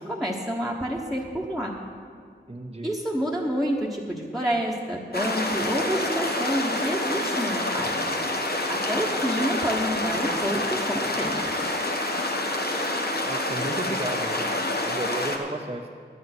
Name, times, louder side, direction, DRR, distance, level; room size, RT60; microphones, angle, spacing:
voice 1, 0.0-1.7 2.8-7.9 8.7-10.6 10.9-11.3, equal, ahead, -3 dB, 1.2 m, -28 dB
voice 2, 2.5-2.9 13.2-14.6 14.8-15.9, right 1 dB, 30° right, 2 dB, 0.7 m, -33 dB
sound 1, 5.1-15.4, left 1 dB, 55° left, 1.2 m, -27 dB
12.0 x 9.3 x 6.1 m, 2.1 s
wide cardioid pair, 45°, 19 cm